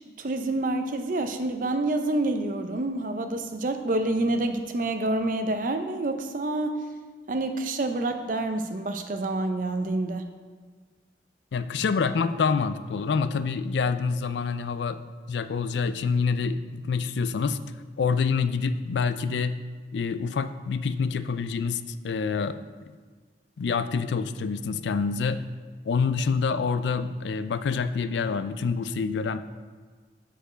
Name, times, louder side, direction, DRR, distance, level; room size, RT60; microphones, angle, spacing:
voice 1, 0.2-6.8 7.3-10.3, right 2 dB, 50° right, 7 dB, 0.5 m, -27 dB
voice 2, 11.5-15.0 15.3-17.6 18.0-19.6 19.9-22.6 23.6-25.4 25.9-29.4, left 5 dB, 85° left, 12 dB, 0.4 m, -27 dB
6.7 x 5.0 x 5.1 m, 1.5 s
head